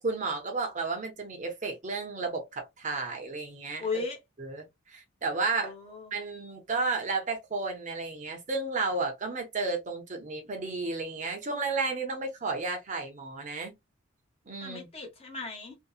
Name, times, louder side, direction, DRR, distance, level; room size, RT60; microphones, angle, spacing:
voice 1, 0.0-4.0 4.4-5.7 6.1-13.7 14.5-14.9, right 3 dB, 35° right, 0.7 m, -32 dB
voice 2, 3.8-4.2 5.6-6.1 14.6-15.8, left 4 dB, 30° left, 0.8 m, -36 dB
2.7 x 2.2 x 2.3 m
head